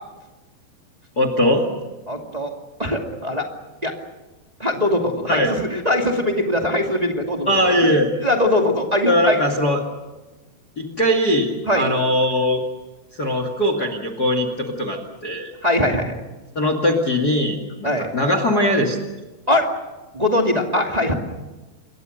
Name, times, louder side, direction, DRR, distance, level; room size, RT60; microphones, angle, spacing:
voice 1, 1.2-1.6 5.3-5.5 7.5-8.1 9.1-9.8 10.8-12.6 13.2-15.5 16.6-19.0, left 1 dB, 30° left, 6 dB, 2.1 m, -20 dB
voice 2, 2.1-2.5 2.8-3.5 3.8-3.9 4.6-7.8 8.2-9.4 11.6-11.9 15.6-16.1 17.8-18.1 19.5-19.7 20.1-21.1, left 1 dB, 15° right, 2 dB, 1.5 m, -21 dB
28.5 x 22.5 x 6.6 m, 1.2 s
omnidirectional pair, 4.6 m